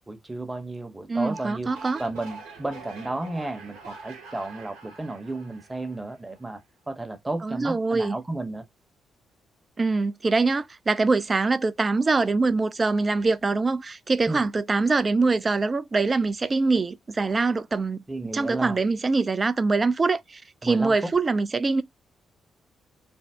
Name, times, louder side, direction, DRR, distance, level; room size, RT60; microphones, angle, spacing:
voice 1, 0.1-6.6 6.9-8.7 14.3-14.4 18.1-18.8 20.6-21.1, right 2 dB, 20° right, 0.9 m, -33 dB
voice 2, 1.1-2.0 7.4-8.2 9.8-18.0 18.3-21.8, right 3 dB, 35° right, 0.4 m, -24 dB
sound 1, 1.1-6.5, right 4 dB, 85° right, 1.0 m, -44 dB
2.6 x 2.0 x 3.3 m
hypercardioid pair, 45°, 0 cm